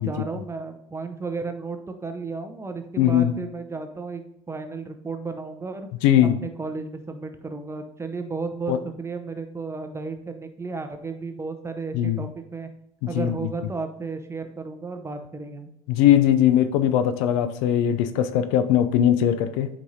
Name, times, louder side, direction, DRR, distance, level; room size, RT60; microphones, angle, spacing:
voice 1, 0.0-5.9 6.2-12.7 13.1-15.7, right 4 dB, 15° right, 7 dB, 0.7 m, -33 dB
voice 2, 3.0-3.4 6.0-6.3 8.7-8.8 11.9-12.2 13.0-13.5 15.9-19.7, left 10 dB, 65° left, 10 dB, 0.6 m, -20 dB
8.3 x 5.2 x 2.8 m, 0.78 s
hypercardioid pair, 90°, 18 cm